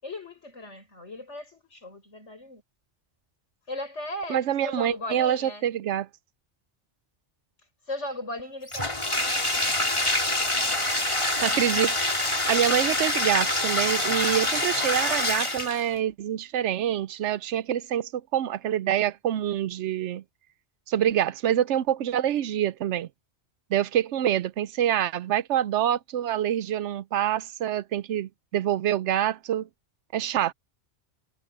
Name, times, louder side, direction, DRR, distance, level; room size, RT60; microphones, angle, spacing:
voice 1, 0.0-2.6 3.7-5.7 7.9-9.7, left 1 dB, 75° left, 7.3 m, -37 dB
voice 2, 4.3-6.1 11.4-12.0 12.5-20.2 20.9-23.1 23.7-29.7 30.1-30.5, right 11 dB, 75° right, 0.9 m, -26 dB
Bathtub (filling or washing), 8.7-15.9, left 1 dB, 25° left, 2.7 m, -26 dB
omnidirectional pair, 1.2 m